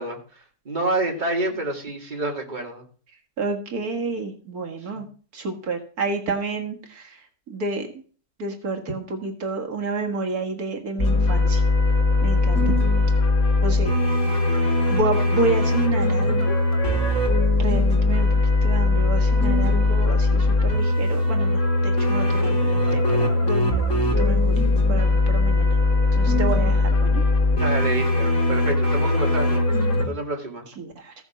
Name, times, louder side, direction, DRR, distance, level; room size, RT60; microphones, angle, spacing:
voice 1, 0.0-2.8 4.9-5.0 27.5-29.7 30.1-30.7, right 2 dB, 30° right, 0 dB, 2.5 m, -28 dB
voice 2, 3.4-5.1 5.3-7.2 7.5-7.9 8.4-11.6 12.2-12.7 13.6-14.0 14.9-16.6 17.6-18.3 18.6-23.9 24.2-25.7 26.2-27.2 30.8-31.1, right 3 dB, 80° right, 3 dB, 2.0 m, -29 dB
sound 1, 11.0-30.0, left 2 dB, 55° left, 3.7 m, -20 dB
15.0 x 7.0 x 6.2 m, 0.42 s
omnidirectional pair, 1.6 m